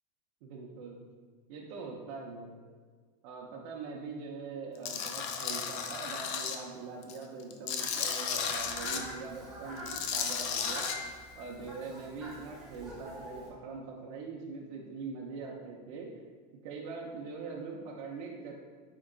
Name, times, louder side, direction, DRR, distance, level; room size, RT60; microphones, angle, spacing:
voice 1, 0.4-1.0 1.5-2.6 3.2-10.9 11.3-16.1 16.6-18.6, right 4 dB, 50° right, -2 dB, 0.5 m, -42 dB
Tools, 4.8-6.6 7.0-9.0 9.8-10.9, left 7 dB, 45° left, 0.4 m, -34 dB
Fowl, 8.3-13.5, right 1 dB, ahead, 0.7 m, -46 dB
Piano, 10.9-11.9, left 8 dB, 75° left, 0.8 m, -48 dB
4.4 x 2.8 x 3.7 m, 1.5 s
supercardioid pair, 175°, 21 cm